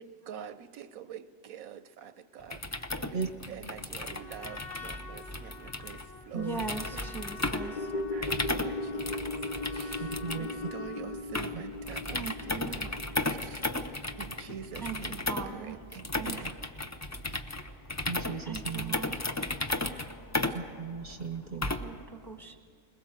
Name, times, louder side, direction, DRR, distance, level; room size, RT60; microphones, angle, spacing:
voice 1, 0.0-6.5 6.9-9.0 9.7-13.0 13.3-13.6 14.2-16.6 19.0-19.6, right 7 dB, 85° right, 1.2 m, -46 dB
sound 1, 2.4-22.0, left 2 dB, 20° left, 0.5 m, -35 dB
Trumpet, 4.0-11.3, left 3 dB, 60° left, 2.1 m, -48 dB
voice 2, 6.3-7.7 12.1-12.9 14.8-15.0 15.3-15.8 16.2-16.4 18.4-19.1 21.7-22.6, right 5 dB, ahead, 1.2 m, -39 dB
sound 2, 7.6-16.0 16.3-16.4, left 2 dB, 40° left, 1.0 m, -38 dB
voice 3, 10.0-10.5 18.1-19.0 20.5-21.7, right 5 dB, 45° right, 0.8 m, -36 dB
21.0 x 21.0 x 7.5 m
omnidirectional pair, 1.4 m